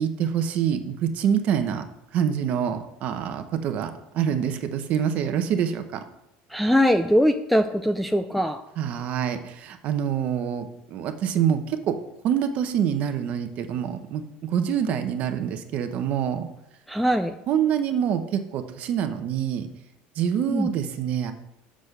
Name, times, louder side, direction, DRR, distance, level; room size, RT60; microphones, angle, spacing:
voice 1, 0.0-1.8 2.1-6.0 8.8-11.9 12.2-14.2 14.5-16.5 17.5-19.7 20.2-21.3, right 8 dB, 40° right, 8 dB, 0.9 m, -26 dB
voice 2, 6.5-8.6 16.9-17.3 20.5-20.7, equal, ahead, 5 dB, 0.3 m, -21 dB
7.8 x 6.3 x 6.6 m, 0.85 s
cardioid pair, 175°, 4 cm